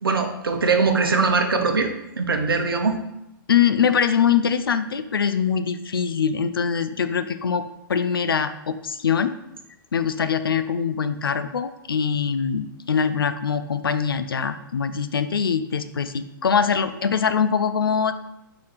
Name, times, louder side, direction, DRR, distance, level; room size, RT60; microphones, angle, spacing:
voice 1, 0.0-3.0, right 4 dB, 90° right, 5 dB, 0.9 m, -22 dB
voice 2, 3.5-9.3 9.9-18.1, left 7 dB, 90° left, 12 dB, 0.5 m, -23 dB
4.9 x 3.9 x 5.6 m, 0.88 s
hypercardioid pair, 120°, 12 cm